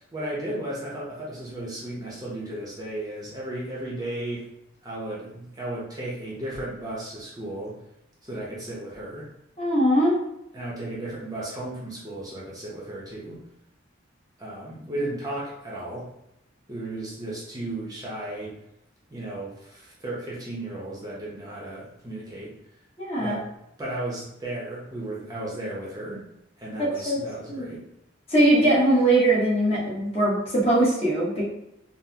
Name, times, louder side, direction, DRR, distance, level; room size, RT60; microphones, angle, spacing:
voice 1, 0.1-4.4 4.8-7.8 8.2-9.3 10.5-13.4 14.4-16.1 16.7-18.5 19.1-22.5 23.2-23.5 23.8-26.2 26.6-27.9, right 1 dB, 20° right, -5 dB, 0.6 m, -34 dB
voice 2, 9.6-10.2 23.0-23.4 26.8-27.2 27.5-27.7 28.3-31.4, right 1 dB, 30° left, -6 dB, 1.0 m, -21 dB
3.8 x 2.0 x 2.8 m, 0.84 s
head